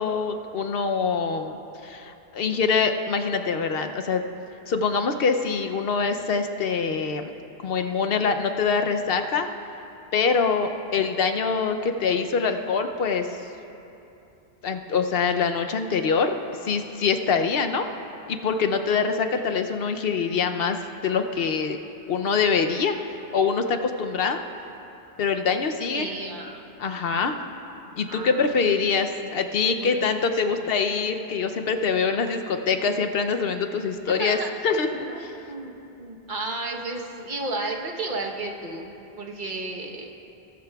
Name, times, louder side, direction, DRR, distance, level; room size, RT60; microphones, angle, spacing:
voice 1, 0.0-1.6 1.8-4.2 4.7-7.3 7.6-9.5 10.1-13.3 14.6-17.8 18.3-20.8 21.0-21.8 22.1-22.9 23.3-24.4 25.2-26.1 26.8-27.4 28.0-34.4 34.6-35.3, left 5 dB, 70° left, 6 dB, 0.8 m, -24 dB
voice 2, 25.9-26.6 28.1-28.7 29.8-30.0 30.4-30.6 34.1-34.5 35.1-35.7 36.0-40.1, right 2 dB, 50° right, 0 dB, 1.2 m, -33 dB
20.0 x 12.5 x 2.3 m, 2.8 s
omnidirectional pair, 1.1 m